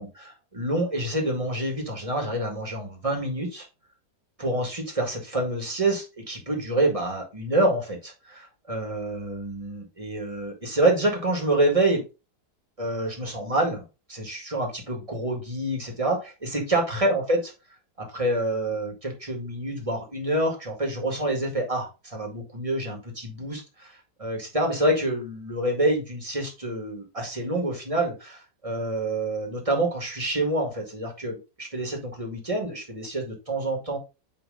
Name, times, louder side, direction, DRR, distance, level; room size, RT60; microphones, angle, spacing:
voice 1, 0.0-3.7 4.4-12.0 12.8-13.8 14.1-17.5 18.0-34.0, right 1 dB, 20° right, 1 dB, 1.9 m, -27 dB
9.0 x 3.3 x 3.8 m, 0.28 s
omnidirectional pair, 1.8 m